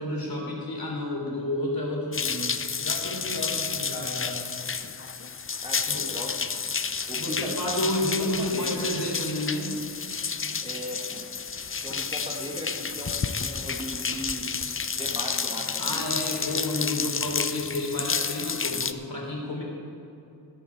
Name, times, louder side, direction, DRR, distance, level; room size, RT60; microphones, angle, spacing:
voice 1, 0.0-2.5 2.8-4.4 5.9-6.1 7.2-9.7 15.8-19.6, left 1 dB, 55° left, -2 dB, 3.5 m, -31 dB
sound 1, 2.1-18.9, left 5 dB, 30° left, 0.5 m, -31 dB
voice 2, 5.6-6.5 7.1-7.9 8.2-8.9 10.6-11.2 11.8-14.5 15.0-16.1, equal, 15° right, -2 dB, 1.6 m, -37 dB
13.0 x 12.5 x 4.6 m, 2.8 s
wide cardioid pair, 85°, 44 cm